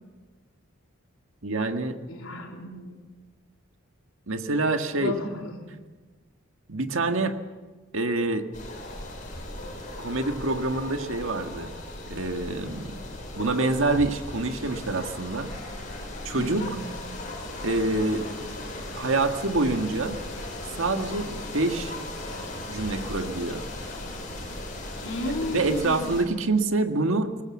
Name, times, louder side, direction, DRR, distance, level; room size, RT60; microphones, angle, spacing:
voice 1, 1.4-2.0 4.3-5.1 6.7-7.3 7.9-8.5 10.0-11.7 12.1-13.0 13.4-15.5 16.2-16.6 17.6-18.5 19.0-20.2 20.8-21.9 22.7-23.6 25.3-27.4, right 2 dB, 75° right, 6 dB, 1.7 m, -26 dB
voice 2, 2.1-3.0 4.9-5.6 16.3-16.7 25.0-26.1, left 2 dB, 75° left, 1 dB, 3.8 m, -33 dB
sound 1, 8.5-26.2, left 1 dB, 40° left, 5.8 m, -37 dB
23.0 x 20.0 x 7.3 m, 1.3 s
head